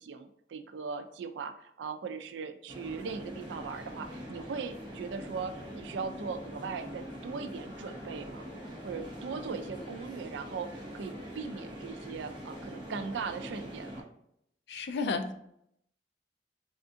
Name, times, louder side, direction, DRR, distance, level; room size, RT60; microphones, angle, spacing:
voice 1, 0.0-8.5 8.8-14.1, right 5 dB, 80° right, 9 dB, 0.3 m, -39 dB
sound 1, 2.7-14.0, equal, 30° right, 0.7 m, -43 dB
voice 2, 14.7-15.3, left 4 dB, 65° left, 7 dB, 0.4 m, -32 dB
3.5 x 2.5 x 2.6 m, 0.74 s
head